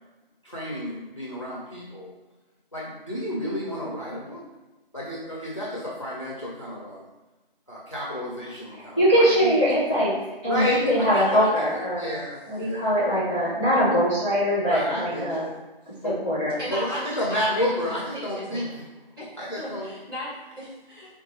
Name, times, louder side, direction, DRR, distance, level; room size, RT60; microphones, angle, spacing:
voice 1, 0.4-2.1 2.7-4.4 4.9-7.1 7.7-9.6 10.5-11.7 12.0-12.9 14.7-15.5 16.0-16.2 16.7-18.7 19.4-19.9, equal, 35° left, -5 dB, 0.5 m, -31 dB
voice 2, 8.9-10.1 10.4-12.1 12.5-15.4 16.0-16.5, equal, 5° right, -18 dB, 1.5 m, -22 dB
voice 3, 16.6-18.8 19.2-19.3 19.6-21.2, equal, 25° right, -12 dB, 1.5 m, -36 dB
3.7 x 2.3 x 4.1 m, 1.1 s
figure-of-eight pair, 165°, 29 cm